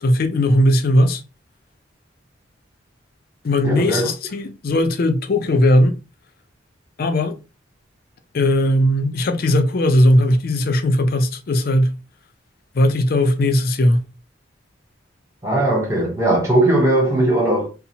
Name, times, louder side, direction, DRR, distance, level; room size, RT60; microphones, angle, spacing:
voice 1, 0.0-1.2 3.4-6.0 7.0-7.4 8.3-12.0 12.7-14.1, left 1 dB, 50° left, 0.4 m, -18 dB
voice 2, 3.6-4.1 15.4-17.7, right 1 dB, 15° right, 0.7 m, -18 dB
2.7 x 2.1 x 2.7 m
head